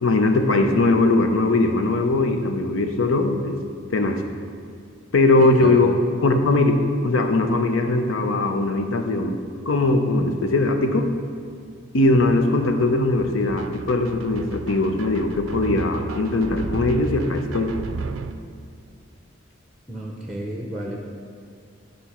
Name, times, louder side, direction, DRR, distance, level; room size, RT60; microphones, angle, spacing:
voice 1, 0.0-3.6 3.9-4.2 5.1-5.9 6.2-6.8 7.0-11.1 11.9-17.8, left 2 dB, 85° left, 5 dB, 0.7 m, -20 dB
voice 2, 5.4-5.8 19.9-21.0, right 1 dB, ahead, 0 dB, 0.6 m, -31 dB
sound 1, 11.1-11.2 11.5-18.3, right 4 dB, 85° right, 0.4 m, -34 dB
10.0 x 5.2 x 4.3 m, 2.2 s
head